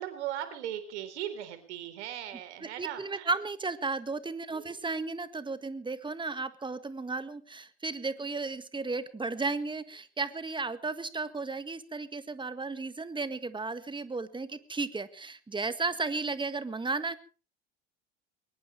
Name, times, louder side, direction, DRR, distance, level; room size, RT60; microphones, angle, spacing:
voice 1, 0.0-3.3 4.5-4.8 8.2-8.3, right 11 dB, 75° right, 10 dB, 3.9 m, -38 dB
voice 2, 2.6-17.2, right 3 dB, 15° right, 13 dB, 1.8 m, -34 dB
22.0 x 19.5 x 3.3 m, 0.37 s
hypercardioid pair, 75°, 35 cm